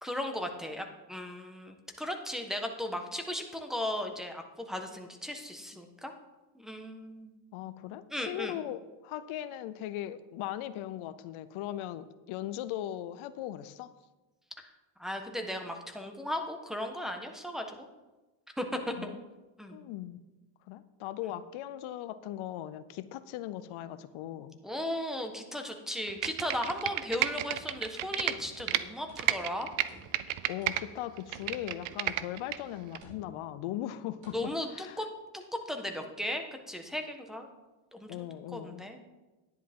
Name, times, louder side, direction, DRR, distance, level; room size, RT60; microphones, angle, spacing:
voice 1, 0.0-6.1 6.5-7.3 8.1-8.6 15.0-17.9 18.6-19.1 19.6-19.8 24.6-29.7 34.3-35.1 35.3-37.5 37.9-38.2 38.5-39.0, left 1 dB, ahead, 3 dB, 1.3 m, -36 dB
voice 2, 7.5-13.9 18.9-19.2 19.7-20.2 20.7-24.6 30.5-35.0 38.1-38.8, left 12 dB, 85° left, 14 dB, 0.6 m, -39 dB
Computer keyboard, 26.1-28.8 29.2-30.8 31.2-32.6 32.9-33.0, right 14 dB, 85° right, 0.6 m, -31 dB
sound 1, 27.3-28.8 29.1-29.6 29.9-31.0 31.3-31.8 32.1-32.5 33.0-33.5 34.2-34.5, right 1 dB, 65° right, 3.5 m, -55 dB
10.5 x 10.0 x 3.7 m, 1.1 s
cardioid pair, 85°, 48 cm